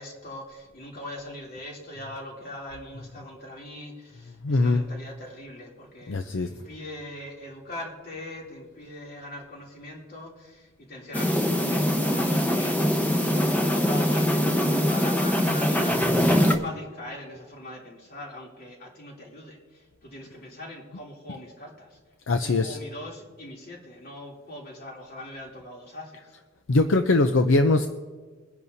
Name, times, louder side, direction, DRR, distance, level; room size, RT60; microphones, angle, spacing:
voice 1, 0.0-22.0 22.4-26.4, left 1 dB, 50° left, -2 dB, 3.1 m, -41 dB
voice 2, 4.4-4.8 6.1-6.5 22.3-22.8 26.7-27.9, left 2 dB, 75° left, 7 dB, 0.6 m, -21 dB
sound 1, 11.1-16.6, equal, 10° left, 1.0 m, -23 dB
22.0 x 10.5 x 2.8 m, 1.4 s
head